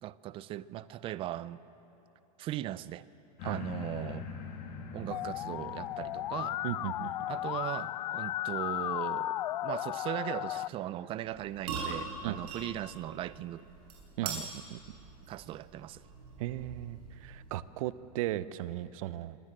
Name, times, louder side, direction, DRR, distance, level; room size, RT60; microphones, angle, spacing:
voice 1, 0.0-1.6 2.4-3.0 3.4-4.3 4.9-6.6 7.3-9.3 9.6-13.6 14.2-14.5 15.3-16.0, right 13 dB, 25° right, 18 dB, 0.5 m, -38 dB
sound 1, 3.4-10.8 11.3-11.4, left 5 dB, 45° left, 3.2 m, -46 dB
Musical instrument, 5.1-10.7, left 14 dB, 80° left, 0.4 m, -35 dB
voice 2, 6.6-7.2 12.2-12.4 14.2-14.4 14.7-14.8 16.4-19.4, right 14 dB, 55° right, 16 dB, 0.8 m, -36 dB
sound 2, 11.3-17.7, right 4 dB, 75° right, 7.9 m, -43 dB
26.5 x 19.5 x 7.6 m, 2.9 s
supercardioid pair, 140°, 21 cm